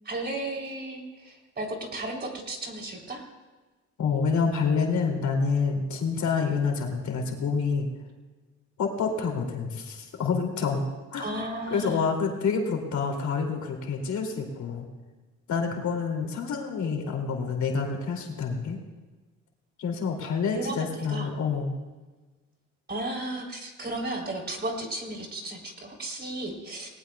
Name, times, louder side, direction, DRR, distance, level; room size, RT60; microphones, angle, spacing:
voice 1, 0.0-3.2 11.2-12.1 20.5-21.3 22.9-26.9, right 1 dB, 35° right, 1 dB, 3.4 m, -34 dB
voice 2, 4.0-7.9 8.8-10.8 11.1-11.2 11.7-14.9 15.5-18.8 19.8-21.8, left 5 dB, 70° left, 2 dB, 2.7 m, -27 dB
19.5 x 18.5 x 2.3 m, 1.2 s
cardioid pair, 90°, 30 cm